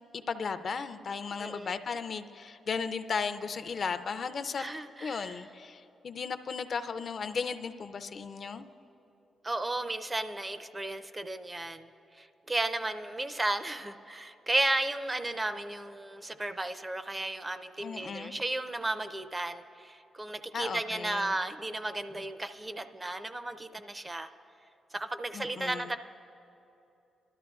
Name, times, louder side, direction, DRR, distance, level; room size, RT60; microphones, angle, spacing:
voice 1, 0.1-4.7 5.0-8.7 17.8-18.4 20.5-21.4 25.3-25.9, left 5 dB, 50° left, 10 dB, 0.4 m, -35 dB
voice 2, 1.4-1.7 4.6-5.4 9.4-24.3 24.9-26.0, right 2 dB, 20° right, 10 dB, 0.4 m, -34 dB
24.0 x 12.5 x 2.3 m, 2.9 s
cardioid pair, 115°, 0 cm